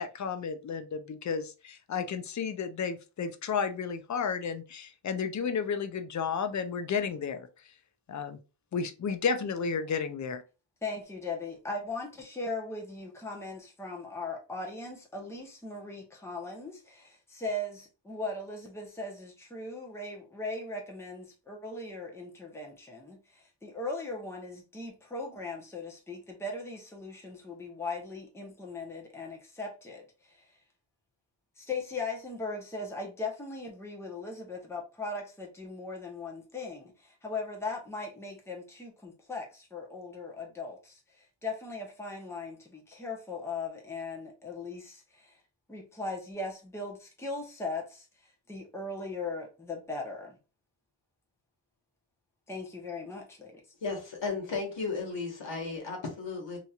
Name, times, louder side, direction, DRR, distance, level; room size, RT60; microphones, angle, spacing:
voice 1, 0.0-7.5 8.1-8.4 8.7-10.4, left 6 dB, 40° left, 0.5 m, -32 dB
voice 2, 10.8-30.5 31.6-45.4 45.7-48.1 48.5-50.4 52.5-53.6, left 3 dB, 5° left, 0.8 m, -39 dB
voice 3, 53.8-56.6, left 4 dB, 60° left, 1.4 m, -34 dB
2.8 x 2.8 x 2.3 m
cardioid pair, 70°, 48 cm